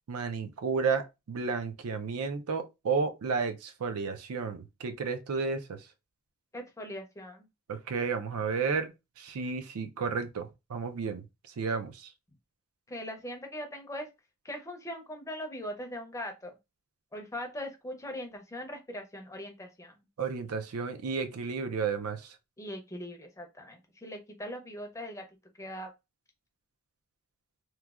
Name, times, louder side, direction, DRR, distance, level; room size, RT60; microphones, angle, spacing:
voice 1, 0.1-5.8 7.7-8.9 9.2-11.3 11.6-12.1 20.2-22.4, right 5 dB, 90° right, 0.5 m, -32 dB
voice 2, 6.5-7.5 12.9-14.1 14.4-16.5 17.1-19.9 22.6-25.3 25.6-25.9, equal, 15° left, 0.5 m, -40 dB
3.0 x 2.2 x 2.3 m
head